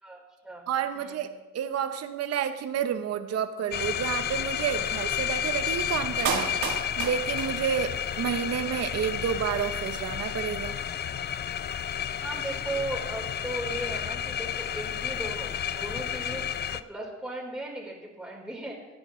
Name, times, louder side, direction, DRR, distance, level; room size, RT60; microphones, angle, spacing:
voice 1, 0.0-0.7 0.9-1.3 12.2-18.9, right 2 dB, 5° right, -3 dB, 4.0 m, -37 dB
voice 2, 0.7-10.8, right 8 dB, 55° right, 9 dB, 0.8 m, -30 dB
sound 1, 3.7-16.8, left 9 dB, 35° left, 0.4 m, -31 dB
Clapping, 6.3-8.2 8.5-8.6, right 6 dB, 75° right, 1.3 m, -32 dB
16.5 x 10.5 x 3.1 m, 1.1 s
cardioid pair, 90°, 30 cm